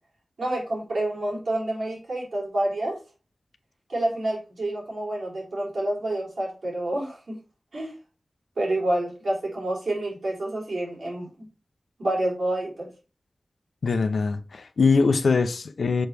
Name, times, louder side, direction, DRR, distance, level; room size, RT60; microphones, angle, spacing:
voice 1, 0.4-3.0 3.9-7.3 7.7-7.9 8.6-11.3 12.0-12.9, right 1 dB, 90° right, 3.7 m, -28 dB
voice 2, 13.8-16.1, left 4 dB, 90° left, 0.6 m, -22 dB
6.3 x 4.7 x 3.4 m
cardioid pair, 45°, 0 cm